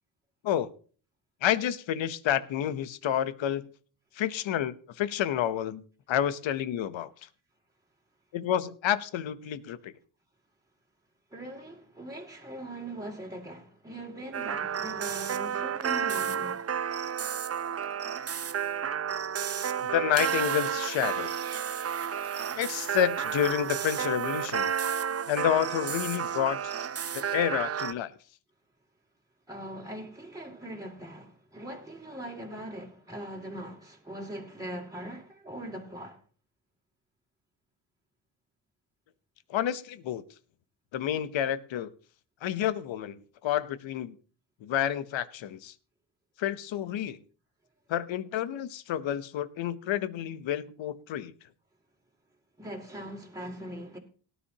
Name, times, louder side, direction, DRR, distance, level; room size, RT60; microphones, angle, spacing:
voice 1, 1.4-3.7 4.1-7.3 8.3-9.9 19.9-21.3 22.5-24.7 25.3-26.7 27.1-28.1 39.5-40.2 40.9-41.9 42.4-44.2 44.6-45.7 46.4-47.2 47.9-51.3, left 10 dB, 75° left, 1.0 m, -29 dB
voice 2, 11.3-16.6 29.5-36.2 52.6-54.0, right 1 dB, 5° right, 2.6 m, -41 dB
sound 1, 14.3-27.9, right 8 dB, 30° right, 0.6 m, -31 dB
17.5 x 10.0 x 2.9 m
cardioid pair, 80°, 46 cm